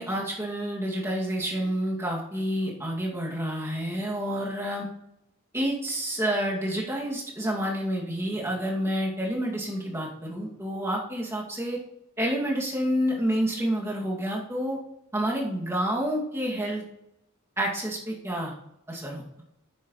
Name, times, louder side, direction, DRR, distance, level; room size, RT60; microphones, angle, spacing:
voice 1, 0.0-4.9 5.5-11.8 12.2-14.8 15.1-16.8 17.6-18.5 18.9-19.2, equal, 15° right, -3 dB, 2.3 m, -29 dB
9.6 x 9.5 x 3.2 m, 0.82 s
head